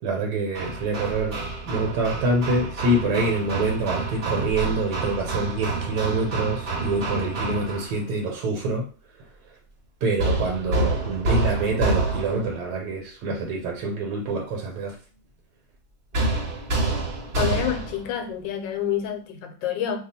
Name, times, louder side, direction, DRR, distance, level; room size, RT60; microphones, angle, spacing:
voice 1, 0.0-8.9 10.0-14.9, right 2 dB, 70° right, 1.2 m, -26 dB
Hammer, 0.5-8.0 10.2-12.6 16.1-18.1, right 2 dB, 50° right, 0.6 m, -28 dB
voice 2, 17.4-20.0, left 9 dB, 80° left, 1.3 m, -28 dB
2.9 x 2.4 x 4.1 m
omnidirectional pair, 2.0 m